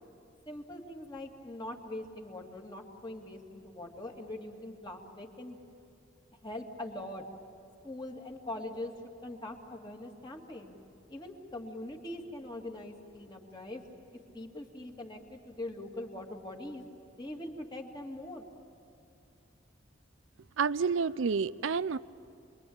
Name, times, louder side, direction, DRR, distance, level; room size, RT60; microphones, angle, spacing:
voice 1, 0.5-5.6 6.4-7.2 7.8-8.9 9.2-10.8 11.1-13.8 14.3-16.8 17.2-18.5, left 1 dB, 25° left, 2.5 m, -42 dB
voice 2, 20.6-22.0, right 5 dB, 75° right, 0.5 m, -29 dB
28.5 x 22.5 x 8.9 m
head